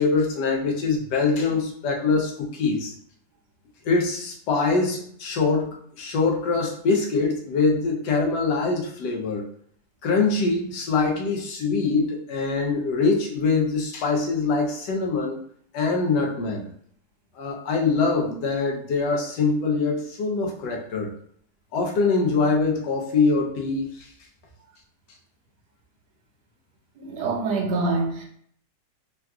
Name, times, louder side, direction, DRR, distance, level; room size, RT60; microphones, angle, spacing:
voice 1, 0.0-2.9 3.8-9.5 10.0-15.4 15.7-16.7 17.4-21.1 21.7-24.1, left 4 dB, 90° left, 0 dB, 1.3 m, -23 dB
voice 2, 27.0-28.2, right 3 dB, 75° right, 0 dB, 1.3 m, -25 dB
3.6 x 2.3 x 2.3 m, 0.63 s
omnidirectional pair, 1.8 m